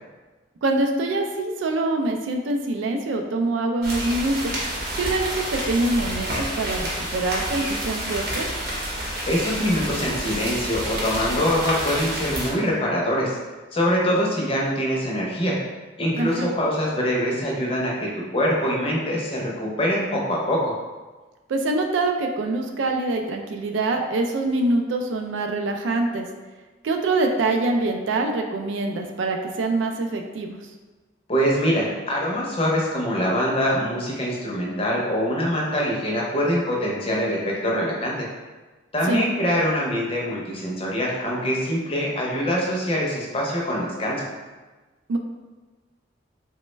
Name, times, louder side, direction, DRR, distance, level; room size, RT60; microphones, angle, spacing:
voice 1, 0.6-4.6 4.9-8.5 16.2-16.5 21.5-26.3 26.8-30.6 39.1-39.2 45.1-45.2, right 2 dB, 75° right, 3 dB, 0.3 m, -24 dB
sound 1, 3.8-12.5, right 1 dB, 50° right, 0.8 m, -29 dB
voice 2, 9.3-13.4 13.7-15.6 16.0-20.7 31.3-38.2 38.9-44.3, equal, 30° left, -3 dB, 0.5 m, -24 dB
3.2 x 2.1 x 3.1 m, 1.3 s
head